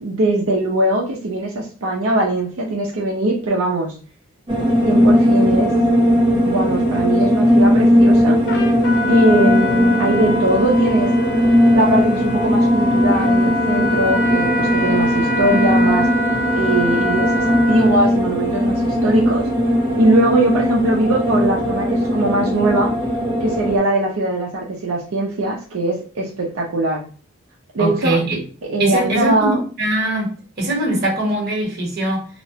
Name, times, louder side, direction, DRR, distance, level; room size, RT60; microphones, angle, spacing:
voice 1, 0.0-4.0 4.8-5.7 6.4-8.4 9.1-11.1 11.7-16.1 16.5-19.4 20.0-22.9 23.4-27.0 27.7-28.2 28.6-29.6, right 1 dB, 80° right, -3 dB, 0.6 m, -20 dB
sound 1, 4.5-23.8, equal, 25° right, 0.5 m, -17 dB
Trumpet, 8.5-18.0, left 1 dB, 50° left, 0.4 m, -26 dB
voice 2, 27.8-28.4 28.8-30.3 30.6-32.3, right 1 dB, 45° right, -2 dB, 1.1 m, -21 dB
2.8 x 2.1 x 2.7 m, 0.38 s
head